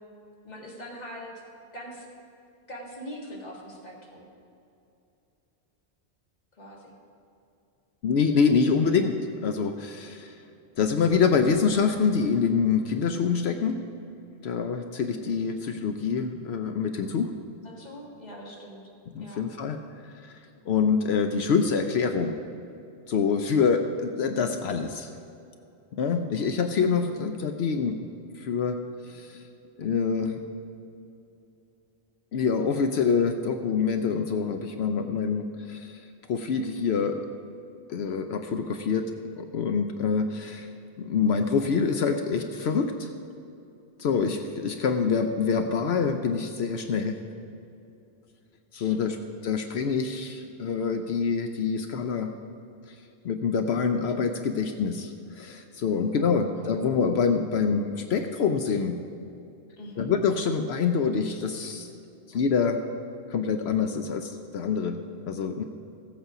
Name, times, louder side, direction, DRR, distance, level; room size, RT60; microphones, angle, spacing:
voice 1, 0.4-1.3 1.7-2.1 2.7-4.3 6.6-6.9 17.6-18.8 19.2-19.5 48.9-49.2 56.1-56.8 59.8-60.1, equal, 40° left, -3 dB, 1.9 m, -42 dB
voice 2, 8.0-9.2 9.4-10.3 10.8-13.8 14.4-17.3 19.1-19.8 20.2-20.3 20.7-22.4 23.1-25.1 25.9-28.0 28.4-28.8 29.1-29.4 29.8-30.4 32.3-36.0 36.3-37.2 37.9-39.1 39.4-40.7 41.0-43.1 44.0-47.2 48.7-49.2 49.4-52.3 53.2-59.0 60.0-61.9 62.3-62.8 63.3-65.0 65.3-65.6, left 5 dB, 75° left, 6 dB, 0.9 m, -26 dB
15.0 x 8.1 x 4.9 m, 2.7 s
omnidirectional pair, 1.1 m